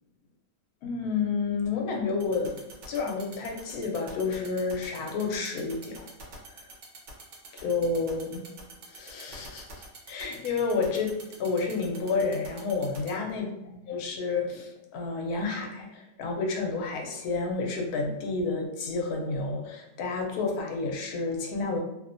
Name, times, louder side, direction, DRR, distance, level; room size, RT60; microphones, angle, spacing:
voice 1, 0.8-6.1 7.5-8.4 8.9-11.1 11.4-13.5 13.9-21.8, left 4 dB, 90° left, 1 dB, 1.1 m, -30 dB
sound 1, 2.2-13.1, right 4 dB, 60° right, 0.8 m, -45 dB
2.7 x 2.1 x 2.5 m, 0.92 s
omnidirectional pair, 1.6 m